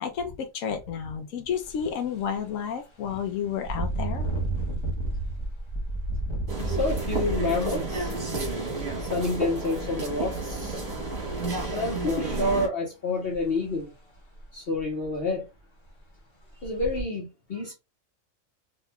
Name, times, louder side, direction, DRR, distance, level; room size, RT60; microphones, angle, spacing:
voice 1, 0.0-4.3, left 7 dB, 75° left, 1.0 m, -31 dB
Engine, 1.5-1.7 2.2-2.4 3.6-9.4 10.2-10.4 10.8-11.5 13.3-13.4 13.8-13.9 14.4-14.5 14.8-15.3 15.9-16.0 16.6-17.0, right 2 dB, 25° left, 1.0 m, -32 dB
sound 1, 6.5-12.7, right 3 dB, 50° right, 2.0 m, -31 dB
voice 2, 6.6-8.2 9.0-10.8 11.7-13.9 14.5-15.4 16.6-17.7, left 2 dB, 50° left, 1.1 m, -29 dB
4.2 x 2.9 x 2.2 m
omnidirectional pair, 1.4 m